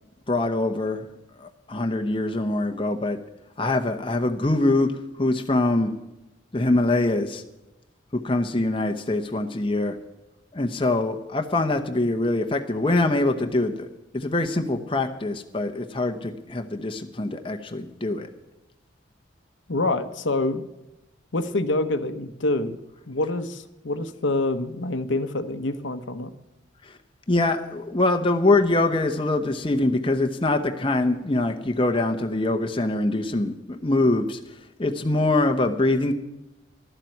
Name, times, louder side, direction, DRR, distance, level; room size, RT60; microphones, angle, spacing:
voice 1, 0.3-1.1 1.4-3.2 3.6-4.9 5.2-5.9 6.5-7.4 8.2-10.0 10.5-13.9 14.1-18.3 26.8-27.0 27.3-34.4 34.8-36.2, left 2 dB, 25° left, 5 dB, 0.9 m, -24 dB
voice 2, 19.7-20.6 21.3-22.8 23.1-26.3, left 2 dB, 70° left, 10 dB, 0.9 m, -26 dB
12.0 x 7.5 x 9.1 m, 0.96 s
head